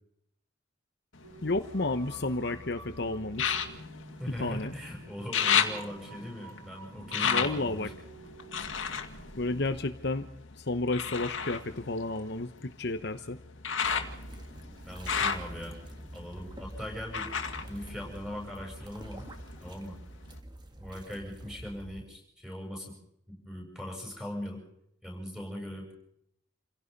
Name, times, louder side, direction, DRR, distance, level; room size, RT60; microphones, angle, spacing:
sound 1, 1.1-2.5 3.3-4.8 5.1-10.3 10.9-18.7 19.1-19.9 20.4-20.5, left 7 dB, 70° left, 2.3 m, -33 dB
sound 2, 1.2-9.8, right 2 dB, 90° right, 2.1 m, -50 dB
voice 1, 1.4-3.6 4.4-4.7 7.2-7.9 9.4-10.3 10.6-13.4, left 2 dB, 55° left, 8 dB, 1.1 m, -31 dB
voice 2, 4.2-7.9 14.8-15.8 16.1-19.3 19.6-20.0 20.8-22.9 23.3-24.6 25.0-25.9, equal, ahead, 0 dB, 7.7 m, -40 dB
sound 3, 13.8-22.1, right 1 dB, 20° right, 2.1 m, -46 dB
28.5 x 17.0 x 5.4 m, 0.75 s
head